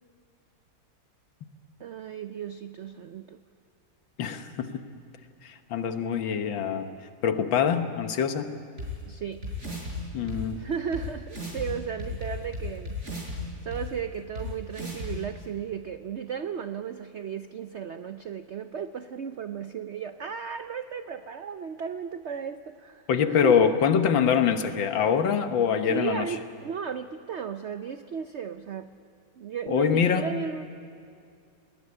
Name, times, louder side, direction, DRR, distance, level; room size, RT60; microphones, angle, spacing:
voice 1, 1.8-3.4 9.1-9.6 10.5-13.0 13.6-23.8 25.9-28.9 29.3-30.7, right 7 dB, 85° right, 10 dB, 0.6 m, -35 dB
voice 2, 4.2-4.7 5.4-6.9 7.2-8.5 10.1-10.6 23.1-26.3 29.7-30.3, left 7 dB, 85° left, 8 dB, 2.0 m, -24 dB
sound 1, 8.8-8.9 9.4-9.9 10.3-10.4 10.9-11.0 11.3-11.6 12.0-13.4 13.7-13.8 14.3-14.4 14.7-15.1, right 1 dB, 35° right, 6.5 m, -35 dB
20.5 x 18.5 x 9.8 m, 2.4 s
omnidirectional pair, 2.0 m